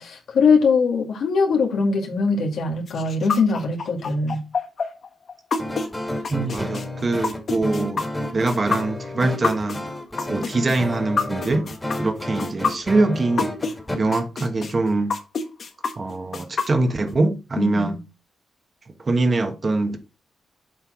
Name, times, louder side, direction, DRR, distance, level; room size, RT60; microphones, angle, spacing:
voice 1, 0.0-4.4 17.6-18.0, left 4 dB, 75° left, 2.1 m, -21 dB
sound 1, 2.9-13.7 14.1-17.1, left 5 dB, 55° left, 1.3 m, -27 dB
sound 2, 5.6-14.0, left 1 dB, 10° left, 2.0 m, -31 dB
voice 2, 6.3-8.0 8.3-9.8 10.3-11.7 12.0-13.5 14.0-15.2 16.0-18.0 19.0-20.0, right 2 dB, 40° right, 1.5 m, -23 dB
7.6 x 4.5 x 4.4 m
cardioid pair, 85°, 0 cm